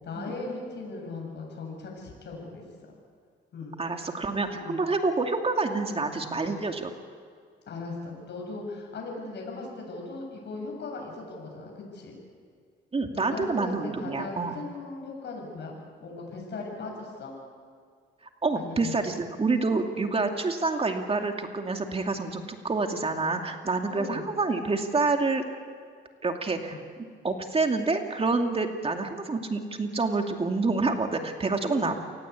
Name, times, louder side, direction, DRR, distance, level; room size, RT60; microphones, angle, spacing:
voice 1, 0.0-3.0 3.5-4.1 4.5-4.8 7.7-12.2 13.1-15.7 16.0-17.3 18.6-19.0 23.9-24.3 26.7-26.8 31.7-31.9, left 3 dB, 60° left, 0 dB, 7.8 m, -38 dB
voice 2, 3.8-6.9 12.9-14.6 18.4-25.4 26.2-26.8 27.2-32.0, right 3 dB, 30° right, 4 dB, 2.5 m, -27 dB
28.0 x 19.0 x 8.4 m, 2.1 s
cardioid pair, 90°, 20 cm